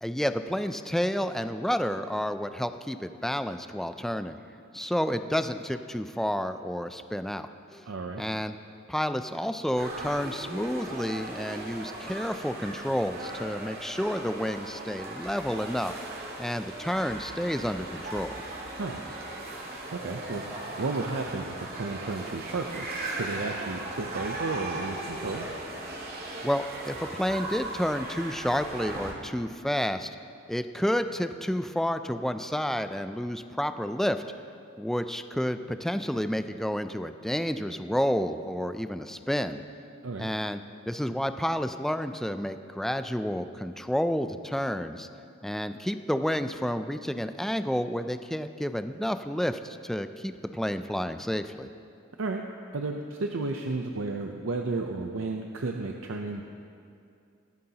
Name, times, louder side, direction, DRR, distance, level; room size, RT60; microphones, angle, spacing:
voice 1, 0.0-4.4 4.7-7.9 8.2-8.5 8.9-16.0 16.4-18.4 26.4-30.1 30.5-34.2 34.8-39.6 40.2-40.6 40.9-45.1 45.4-51.7, equal, ahead, 9 dB, 0.3 m, -30 dB
voice 2, 7.9-8.2 18.8-19.0 19.9-20.4 20.8-22.9 23.2-25.5 40.0-40.3 52.2-52.4 52.7-56.4, right 3 dB, 70° right, 3 dB, 0.6 m, -33 dB
sound 1, 9.8-29.1, right 2 dB, 50° right, 1.8 m, -38 dB
22.5 x 9.4 x 2.9 m, 2.5 s
head